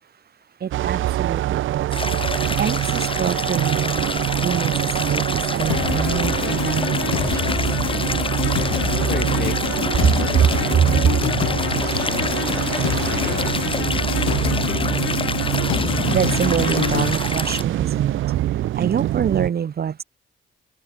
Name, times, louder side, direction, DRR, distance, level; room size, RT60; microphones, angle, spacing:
voice 1, 0.6-1.9 2.6-7.5 10.0-10.1 10.4-10.5 10.7-11.3 15.7-18.2 18.8-20.0, right 8 dB, 50° right, 3.2 m, -24 dB
sound 1, 0.7-19.5, right 14 dB, 80° right, 1.7 m, -24 dB
Stream, 1.9-17.6, left 4 dB, 25° left, 3.1 m, -28 dB
sound 2, 5.7-17.1, left 16 dB, 90° left, 1.5 m, -27 dB
voice 2, 9.1-15.0, left 7 dB, 50° left, 5.1 m, -35 dB
cardioid pair, 90°, 20 cm